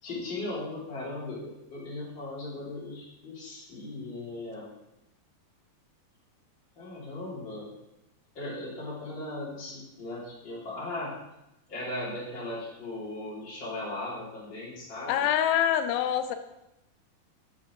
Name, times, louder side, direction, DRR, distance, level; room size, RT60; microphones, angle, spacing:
voice 1, 0.0-4.7 6.8-7.7 8.3-11.1 11.7-15.2, left 2 dB, 30° left, -7 dB, 2.9 m, -37 dB
voice 2, 15.1-16.4, left 10 dB, 90° left, 9 dB, 3.0 m, -25 dB
9.1 x 6.4 x 3.7 m, 0.89 s
omnidirectional pair, 5.2 m